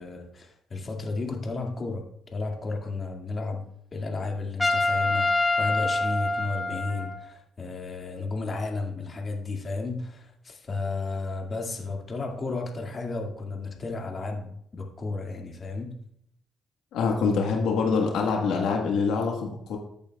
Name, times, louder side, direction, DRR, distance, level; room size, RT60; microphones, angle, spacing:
voice 1, 0.0-15.9, left 3 dB, 40° left, 1 dB, 2.1 m, -33 dB
Trumpet, 4.6-7.3, left 2 dB, 15° left, 1.6 m, -26 dB
voice 2, 16.9-19.8, left 5 dB, 85° left, 1 dB, 1.4 m, -25 dB
14.0 x 8.7 x 2.3 m, 0.72 s
cardioid pair, 90°, 0 cm